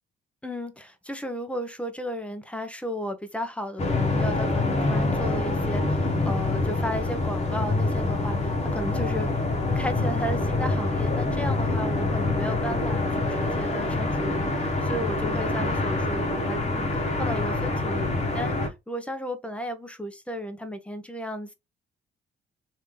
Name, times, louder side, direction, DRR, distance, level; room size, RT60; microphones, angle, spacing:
voice 1, 0.4-9.3 9.7-21.5, equal, 5° left, 0.8 m, -34 dB
sound 1, 3.8-18.7, left 2 dB, 35° left, 1.2 m, -26 dB
3.2 x 2.7 x 3.7 m
cardioid pair, 90°, 20 cm